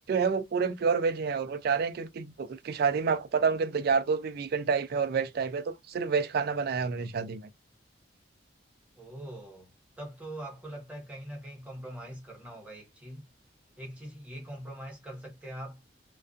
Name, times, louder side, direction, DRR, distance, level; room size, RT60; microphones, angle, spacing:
voice 1, 0.1-7.4, right 5 dB, 55° right, 0.3 m, -28 dB
voice 2, 9.0-9.7 10.0-13.3 13.8-15.8, right 1 dB, 5° right, 1.0 m, -42 dB
2.4 x 2.3 x 2.4 m
head